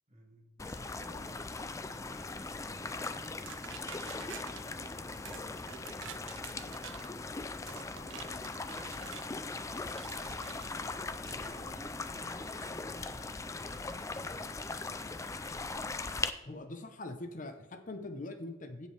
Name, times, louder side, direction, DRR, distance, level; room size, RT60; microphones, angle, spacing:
voice 1, 0.1-7.4 8.0-10.9 11.3-15.4, equal, 40° right, 1 dB, 1.8 m, -56 dB
sound 1, 0.6-16.3, left 3 dB, 15° left, 0.4 m, -40 dB
sound 2, 3.5-4.6 5.2-5.4 5.7-7.1 7.7-9.3 10.0-10.7 11.2-11.5, right 10 dB, 80° right, 0.4 m, -48 dB
voice 2, 16.4-18.9, left 2 dB, 45° left, 7 dB, 0.8 m, -42 dB
16.5 x 5.5 x 3.4 m, 0.97 s
head